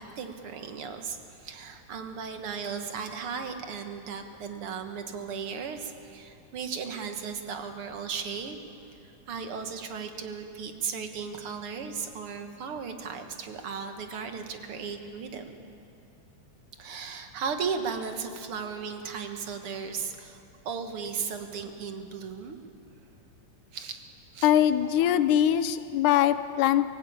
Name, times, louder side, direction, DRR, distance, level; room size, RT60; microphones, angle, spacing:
voice 1, 0.0-8.6 9.0-15.5 16.8-22.6 23.7-24.0 24.3-24.5, right 6 dB, 55° right, 6 dB, 1.9 m, -36 dB
voice 2, 24.4-26.9, left 11 dB, 80° left, 12 dB, 2.1 m, -22 dB
23.0 x 16.0 x 8.8 m, 2.6 s
omnidirectional pair, 3.7 m